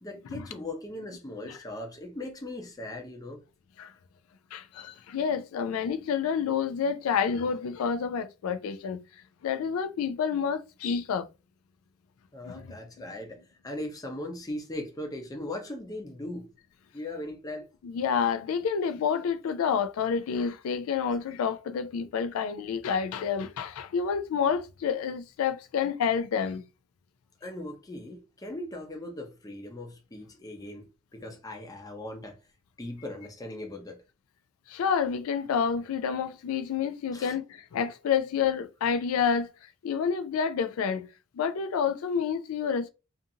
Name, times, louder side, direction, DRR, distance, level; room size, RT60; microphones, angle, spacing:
voice 1, 0.0-3.4 12.3-16.5 16.9-17.7 27.4-30.9 31.1-32.4 32.8-34.0 37.1-37.3, left 1 dB, 15° left, 0.6 m, -39 dB
voice 2, 4.5-9.0 9.4-11.3 12.4-12.6 17.8-26.6 34.7-39.5 39.8-41.1 41.3-42.9, left 6 dB, 85° left, 0.3 m, -29 dB
2.5 x 2.5 x 2.7 m
head